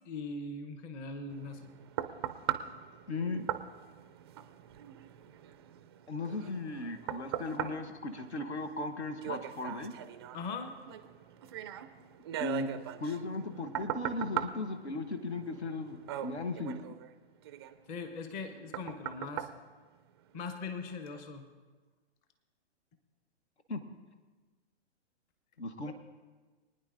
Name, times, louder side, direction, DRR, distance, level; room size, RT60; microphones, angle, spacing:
voice 1, 0.0-1.8 10.3-10.7 17.9-19.5 20.3-21.5 25.8-25.9, left 3 dB, 25° left, 8 dB, 0.8 m, -40 dB
sound 1, 1.3-20.6 21.1-21.2, right 11 dB, 25° right, 0.3 m, -41 dB
voice 2, 3.1-3.4 6.1-9.9 12.4-12.7 13.0-17.0 23.7-23.8 25.6-25.9, left 3 dB, 80° left, 9 dB, 1.2 m, -37 dB
23.5 x 9.7 x 2.5 m, 1.3 s
figure-of-eight pair, 125°, 33 cm